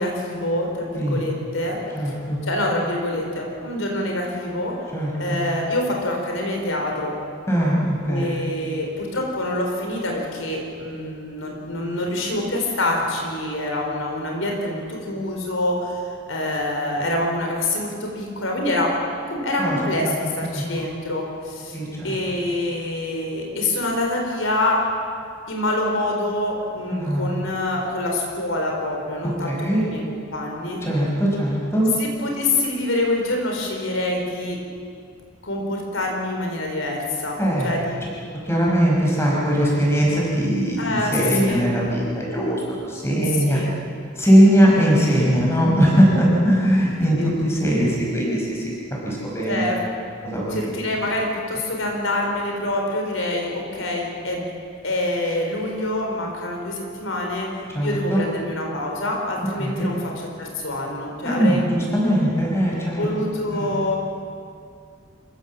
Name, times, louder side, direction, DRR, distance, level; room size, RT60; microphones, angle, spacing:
voice 1, 0.0-1.8 2.5-4.7 5.2-7.1 8.1-16.0 16.3-18.9 19.3-21.8 22.0-24.8 25.5-30.8 32.0-34.6 35.4-37.4 37.6-38.0 40.8-41.1 41.4-41.7 43.4-43.7 47.1-47.4 49.5-49.8 50.5-54.5 54.8-60.0 60.4-61.6 63.0-64.0, left 1 dB, 80° left, 1 dB, 4.2 m, -26 dB
voice 2, 2.0-2.4 4.9-5.4 7.5-8.4 19.6-19.8 20.0-20.2 20.5-20.6 21.7-22.2 26.9-27.3 29.2-29.9 30.8-31.9 37.4-37.7 38.4-43.6 44.2-48.7 49.0-49.6 50.2-50.6 57.7-58.2 59.6-59.9 61.2-63.7, equal, 15° left, -4 dB, 5.4 m, -20 dB
26.5 x 16.0 x 7.5 m, 2.3 s
head